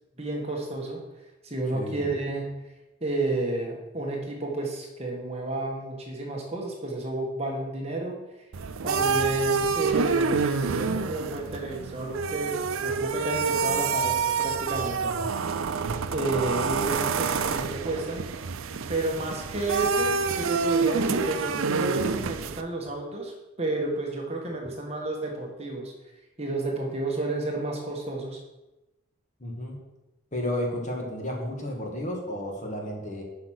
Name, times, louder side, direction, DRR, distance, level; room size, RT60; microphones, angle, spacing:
voice 1, 0.2-1.0 1.4-2.5 3.0-8.2 8.8-15.1 16.1-18.2 18.9-25.9 26.4-28.4, right 2 dB, 30° right, 0 dB, 1.5 m, -31 dB
voice 2, 1.7-2.1 8.8-9.1 15.0-15.4 19.2-19.3 29.4-29.8 30.3-33.2, left 1 dB, 35° left, 0 dB, 1.8 m, -33 dB
sound 1, 8.5-22.6, right 5 dB, 85° right, 0.5 m, -27 dB
8.0 x 5.7 x 6.5 m, 1.0 s
head